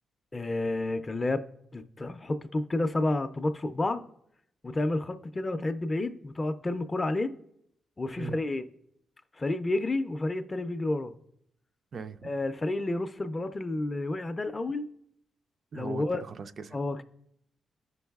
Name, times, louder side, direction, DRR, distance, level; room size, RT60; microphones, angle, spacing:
voice 1, 0.3-1.5 1.7-4.0 4.6-7.3 8.0-8.6 9.3-11.2 12.2-14.8 15.7-16.2 16.7-17.0, left 2 dB, 25° left, 0.4 m, -30 dB
voice 2, 11.9-12.3 15.7-16.8, right 5 dB, 50° right, 0.3 m, -40 dB
14.5 x 5.3 x 2.3 m
cardioid pair, 130°, 0 cm